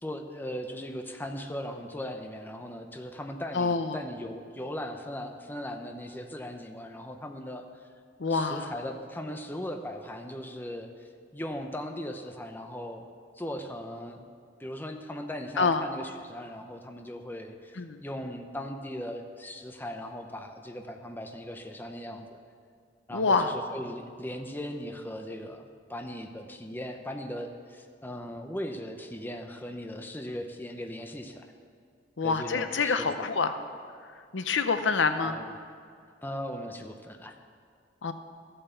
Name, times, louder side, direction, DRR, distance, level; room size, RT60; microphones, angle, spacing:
voice 1, 0.0-7.7 8.3-13.1 13.3-14.3 14.6-22.3 23.1-31.5 32.2-33.2 35.2-35.7 36.2-37.3, left 1 dB, 10° left, 4 dB, 0.8 m, -38 dB
voice 2, 3.5-4.0 8.2-8.7 15.6-15.8 17.8-18.0 23.1-23.5 32.2-33.5 34.3-35.4 38.0-38.1, left 4 dB, 80° left, 9 dB, 0.8 m, -26 dB
14.5 x 8.9 x 6.9 m, 2.2 s
head